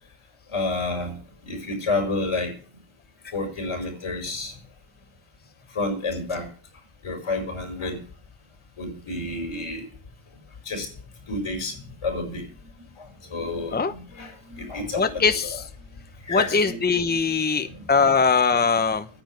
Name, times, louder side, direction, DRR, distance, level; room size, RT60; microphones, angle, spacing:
voice 1, 0.5-1.2 1.4-2.5 3.3-4.6 5.7-6.5 7.0-8.0 8.8-9.8 10.6-10.9 11.3-12.4 12.7-15.6 16.2-17.8, left 2 dB, 80° left, 3 dB, 5.1 m, -30 dB
voice 2, 14.9-15.6 16.3-19.1, left 5 dB, 20° left, 9 dB, 0.9 m, -21 dB
9.9 x 7.2 x 9.2 m, 0.42 s
cardioid pair, 60°, 50 cm